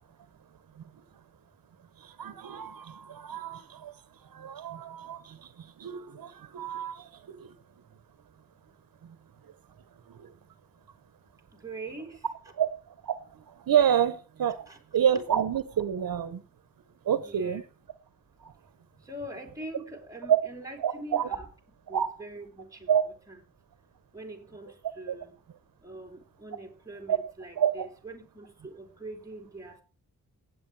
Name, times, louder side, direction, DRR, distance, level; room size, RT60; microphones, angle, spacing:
voice 1, 2.0-3.9 4.3-5.4 5.8-7.5 10.1-10.3 12.6-12.7 13.0-13.1 13.7-14.7 14.9-16.4 17.1-17.6 18.4-18.5 20.3-20.4 20.8-21.3 21.9-22.1 22.9-23.0 25.1-25.2 27.1-27.2 27.6-27.9, right 9 dB, 75° right, 13 dB, 1.2 m, -28 dB
voice 2, 11.6-12.3 14.7-14.8 17.2-17.6 19.0-21.5 21.9-23.4 24.1-25.3 25.8-29.8, right 2 dB, 10° right, 1 dB, 3.3 m, -43 dB
18.0 x 8.5 x 4.8 m, 0.36 s
wide cardioid pair, 180°, 35 cm